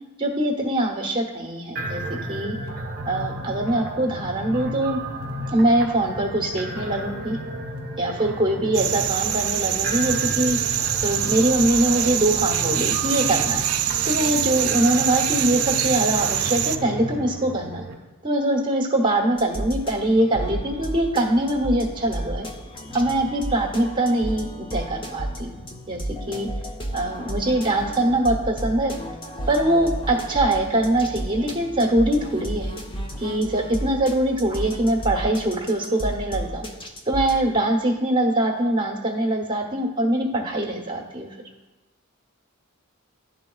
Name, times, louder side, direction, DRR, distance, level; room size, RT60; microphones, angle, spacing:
voice 1, 0.2-2.0 2.3-2.5 3.0-5.0 5.5-7.4 8.0-10.6 11.0-13.6 14.0-17.8 18.2-22.5 22.9-25.5 25.9-26.0 26.3-26.5 26.9-29.0 29.5-32.7 33.2-36.6 37.1-41.3, right 1 dB, 20° right, -1 dB, 1.1 m, -23 dB
sound 1, 1.8-17.9, equal, 50° right, 1.1 m, -33 dB
sound 2, 8.7-16.8, right 11 dB, 70° right, 0.4 m, -24 dB
sound 3, 19.4-37.4, right 1 dB, 25° left, 0.6 m, -33 dB
11.5 x 3.9 x 2.3 m, 1.2 s
head